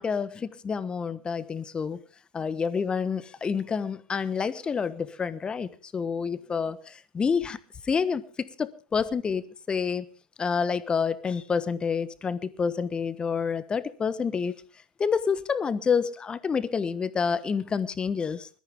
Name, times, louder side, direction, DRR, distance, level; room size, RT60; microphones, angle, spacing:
voice 1, 0.0-2.0 2.3-7.6 7.8-10.0 10.4-14.5 15.0-18.5, left 6 dB, 20° left, 1.2 m, -28 dB
21.0 x 13.5 x 3.7 m
figure-of-eight pair, 85°, 4 cm